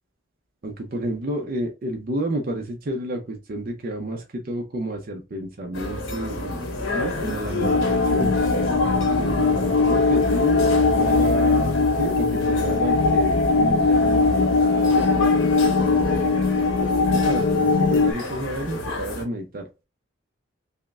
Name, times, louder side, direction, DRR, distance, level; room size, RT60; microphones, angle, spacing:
voice 1, 0.6-8.3 9.1-11.7 12.0-16.2 17.1-19.7, right 1 dB, 45° right, 0.5 m, -31 dB
sound 1, 5.7-19.2, left 1 dB, 75° left, 1.0 m, -31 dB
sound 2, 7.6-18.1, left 3 dB, 55° left, 0.4 m, -20 dB
5.5 x 2.0 x 2.3 m
head